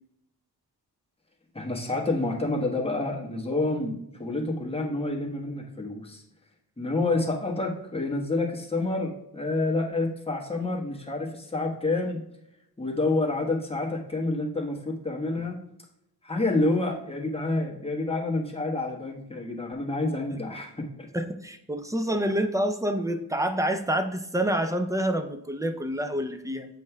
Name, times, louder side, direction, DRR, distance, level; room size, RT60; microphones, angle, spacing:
voice 1, 1.5-6.2 6.8-12.2 12.8-15.5 16.2-20.8, left 2 dB, 15° left, -1 dB, 1.2 m, -28 dB
voice 2, 21.1-26.7, right 1 dB, 10° right, 7 dB, 0.5 m, -27 dB
7.7 x 5.3 x 2.3 m, 0.80 s
wide cardioid pair, 80°, 39 cm